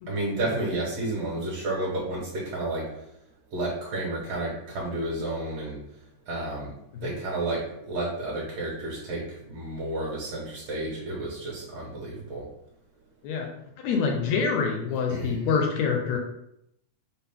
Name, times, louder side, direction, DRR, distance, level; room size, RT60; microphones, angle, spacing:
voice 1, 0.1-2.9 3.5-5.8 6.3-12.4 14.9-15.4, right 2 dB, 65° right, -5 dB, 2.0 m, -31 dB
voice 2, 13.8-16.2, left 5 dB, 80° left, 1 dB, 1.6 m, -26 dB
5.9 x 2.0 x 3.5 m, 0.79 s
omnidirectional pair, 3.5 m